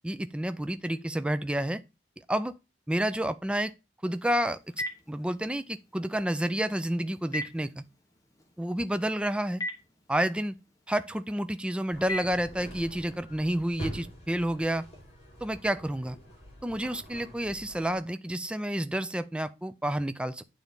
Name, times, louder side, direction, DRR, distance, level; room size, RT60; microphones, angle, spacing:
voice 1, 0.0-1.8 2.3-2.5 2.9-3.7 4.0-4.6 5.1-7.8 8.6-9.6 10.1-10.6 10.9-14.9 15.4-16.2 16.6-20.4, right 1 dB, 5° right, 0.3 m, -30 dB
Telephone, 4.1-12.9, left 1 dB, 20° left, 1.2 m, -42 dB
sound 1, 11.9-17.9, right 1 dB, 35° left, 3.5 m, -45 dB
9.3 x 3.5 x 5.2 m
head